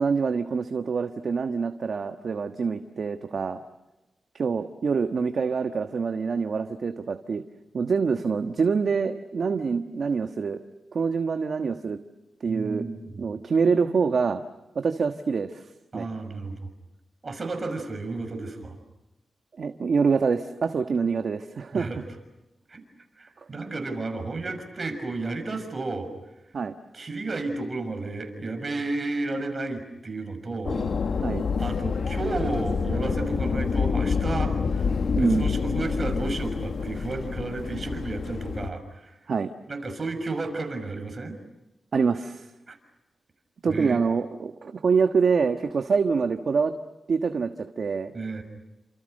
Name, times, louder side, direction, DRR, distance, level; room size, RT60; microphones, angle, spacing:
voice 1, 0.0-3.6 4.3-7.4 7.7-10.6 10.9-12.0 12.4-12.8 13.2-14.4 14.7-15.6 15.9-16.1 19.6-21.9 26.5-26.7 31.2-31.4 35.1-35.5 39.3-39.5 41.9-42.5 43.6-46.7 47.1-47.5 47.8-48.1, right 5 dB, 60° right, 6 dB, 1.4 m, -25 dB
voice 2, 12.5-13.2 15.9-16.6 17.2-18.8 21.7-22.0 22.7-22.8 23.2-26.1 26.9-30.8 31.6-34.9 35.2-39.2 39.7-41.4 42.7-42.8 43.7-44.0 48.1-48.4, right 3 dB, 40° right, 6 dB, 6.3 m, -32 dB
sound 1, 30.6-38.7, left 5 dB, 60° left, 1.3 m, -27 dB
30.0 x 27.0 x 6.7 m, 0.99 s
wide cardioid pair, 100°, 0 cm